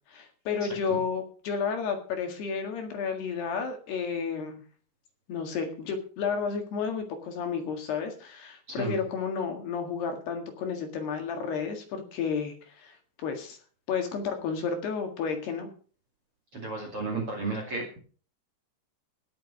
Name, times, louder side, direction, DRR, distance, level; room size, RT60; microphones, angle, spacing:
voice 1, 0.1-4.6 5.3-13.6 13.9-15.7, left 6 dB, 60° left, 5 dB, 3.6 m, -32 dB
voice 2, 16.5-18.0, right 3 dB, 40° right, 1 dB, 2.5 m, -33 dB
18.0 x 7.4 x 5.6 m, 0.41 s
omnidirectional pair, 5.7 m